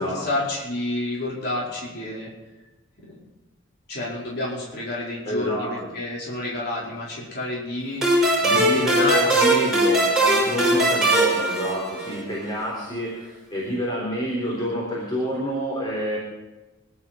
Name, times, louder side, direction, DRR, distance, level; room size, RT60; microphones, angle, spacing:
voice 1, 0.0-2.3 3.1-3.2 3.9-8.3 8.5-9.7 10.4-10.9, left 2 dB, 55° left, -6 dB, 4.9 m, -29 dB
voice 2, 5.3-5.7 8.4-16.2, equal, 25° left, -4 dB, 3.9 m, -28 dB
sound 1, 8.0-12.4, right 1 dB, ahead, 5.8 m, -20 dB
23.5 x 12.0 x 4.6 m, 1.1 s
head